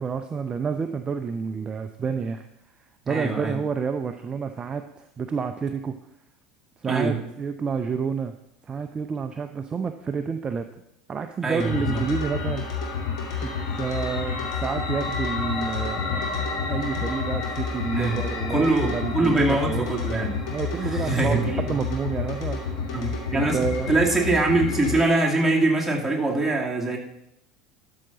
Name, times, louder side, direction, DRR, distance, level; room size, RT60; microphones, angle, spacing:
voice 1, 0.0-2.5 3.1-6.0 6.8-8.3 8.6-10.7 11.1-12.6 13.4-19.9 20.5-22.9 23.3-23.9, right 5 dB, 25° right, 7 dB, 0.5 m, -29 dB
voice 2, 3.1-3.6 6.9-7.2 11.4-12.0 17.9-18.2 18.5-20.3 20.8-21.6 22.9-23.6 23.9-27.0, right 2 dB, 5° right, -3 dB, 2.3 m, -23 dB
sound 1, 11.6-25.1, left 5 dB, 65° left, 2.2 m, -29 dB
12.0 x 5.8 x 3.9 m, 0.81 s
hypercardioid pair, 75°, 3 cm